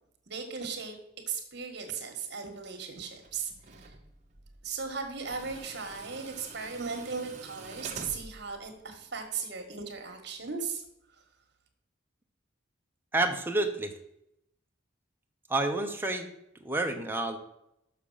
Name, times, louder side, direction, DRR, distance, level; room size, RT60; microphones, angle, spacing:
voice 1, 0.3-1.0 1.3-3.5 3.8-3.9 4.6-10.8, right 5 dB, 65° right, 4 dB, 1.7 m, -37 dB
Tools, 3.0-9.3, right 3 dB, 40° right, 1.2 m, -48 dB
voice 2, 13.1-13.9 15.5-16.3 16.6-17.4, right 2 dB, 10° right, 3 dB, 1.0 m, -29 dB
6.8 x 6.4 x 5.6 m, 0.80 s
head